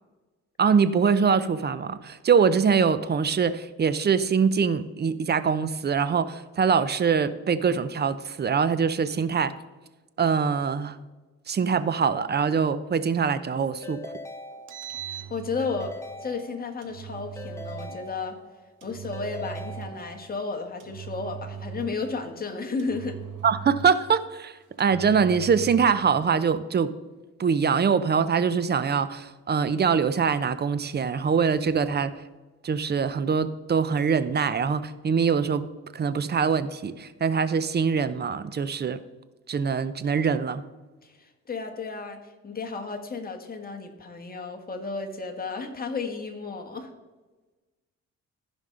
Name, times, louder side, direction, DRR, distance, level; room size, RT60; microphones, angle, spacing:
voice 1, 0.6-9.5 10.2-11.0 11.5-14.0 23.4-24.5 24.8-26.9 27.4-32.1 32.6-35.7 35.9-39.0 39.5-40.6, right 6 dB, 35° right, 14 dB, 0.6 m, -23 dB
Keyboard (musical) / Ringtone, 13.8-15.2 15.6-16.9 17.4-18.7 19.1-20.5, left 2 dB, 10° left, 1.0 m, -42 dB
Engine, 14.5-16.0 16.8-18.0 18.8-20.1 20.8-22.1 22.8-24.1 24.8-26.0, right 8 dB, 80° right, 1.2 m, -39 dB
voice 2, 15.1-15.9 16.2-18.4 18.8-23.2 41.0-46.9, left 4 dB, 30° left, 4 dB, 1.5 m, -33 dB
14.5 x 5.3 x 3.8 m, 1.2 s
cardioid pair, 90°, 30 cm